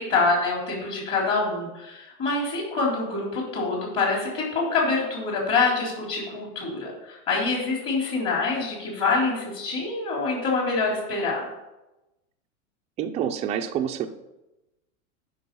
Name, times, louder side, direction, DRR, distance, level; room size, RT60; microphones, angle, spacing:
voice 1, 0.0-11.4, left 3 dB, 35° left, -2 dB, 3.6 m, -26 dB
voice 2, 13.0-14.1, right 9 dB, 15° right, 4 dB, 0.4 m, -27 dB
10.0 x 5.5 x 5.4 m, 0.97 s
supercardioid pair, 140°, 42 cm